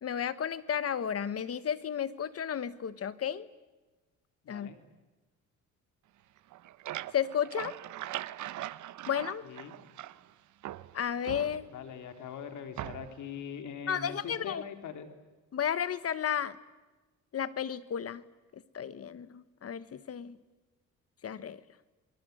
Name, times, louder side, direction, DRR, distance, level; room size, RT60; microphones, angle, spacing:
voice 1, 0.0-3.5 4.5-4.7 7.1-7.7 9.1-9.4 10.9-11.7 13.9-14.6 15.5-16.5 17.3-18.2 18.7-20.4 21.2-21.6, left 8 dB, 50° left, 15 dB, 1.5 m, -33 dB
voice 2, 4.4-4.8 9.4-9.8 11.7-15.1, left 7 dB, 75° left, 7 dB, 3.4 m, -42 dB
sound 1, 6.4-10.3 10.6-12.0 12.8-13.3, right 14 dB, 75° right, 0.9 m, -41 dB
29.0 x 23.0 x 8.1 m, 1.2 s
cardioid pair, 90°, 30 cm